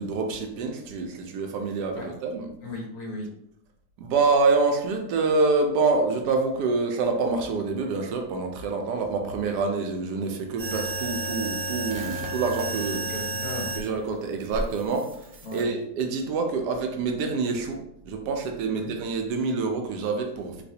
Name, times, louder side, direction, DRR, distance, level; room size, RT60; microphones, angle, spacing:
voice 1, 0.0-2.5 4.0-13.0 13.8-15.1 15.5-20.6, right 4 dB, 80° right, 4 dB, 1.2 m, -26 dB
voice 2, 2.6-3.3 13.0-13.7 15.4-15.7 18.7-18.9, left 1 dB, 65° left, -3 dB, 1.5 m, -36 dB
sound 1, 10.6-13.8 14.5-15.6, right 2 dB, 60° right, 1.0 m, -32 dB
4.0 x 2.5 x 2.7 m, 0.78 s
omnidirectional pair, 1.8 m